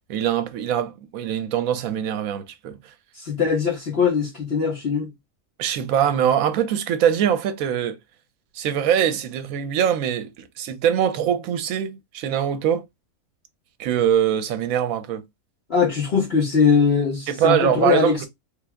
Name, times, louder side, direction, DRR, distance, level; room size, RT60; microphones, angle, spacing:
voice 1, 0.1-2.9 5.6-8.0 8.5-12.9 13.8-15.2 17.3-18.2, right 9 dB, 80° right, 1.0 m, -23 dB
voice 2, 3.2-5.1 15.7-18.2, left 6 dB, 50° left, 1.2 m, -21 dB
3.5 x 2.0 x 3.4 m
omnidirectional pair, 1.5 m